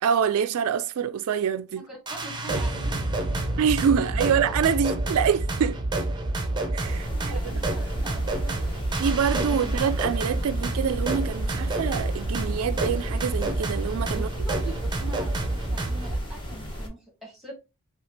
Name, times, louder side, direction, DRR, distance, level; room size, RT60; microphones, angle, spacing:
voice 1, 0.0-1.8 3.6-5.8 6.7-7.6 9.0-14.3, right 7 dB, 85° right, 0.4 m, -26 dB
voice 2, 1.7-3.5 7.1-9.0 9.5-9.7 14.1-17.5, right 2 dB, ahead, 1.9 m, -43 dB
sound 1, 2.1-14.1, left 3 dB, 45° left, 0.5 m, -43 dB
sound 2, 2.1-16.2, right 2 dB, 20° right, 0.7 m, -28 dB
sound 3, 6.9-16.9, equal, 25° left, 1.3 m, -36 dB
5.6 x 2.4 x 3.2 m
head